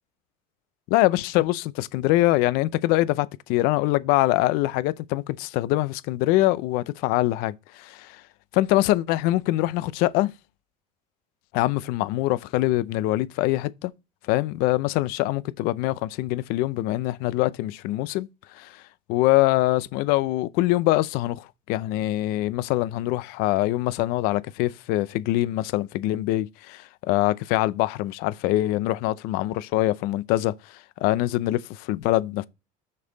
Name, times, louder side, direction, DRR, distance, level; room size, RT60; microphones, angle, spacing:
voice 1, 0.9-8.2 8.5-10.3 11.5-13.9 14.3-18.3 18.5-18.8 19.1-32.5, left 17 dB, 65° left, 0.6 m, -24 dB
6.7 x 5.4 x 3.9 m
cardioid pair, 155°, 16 cm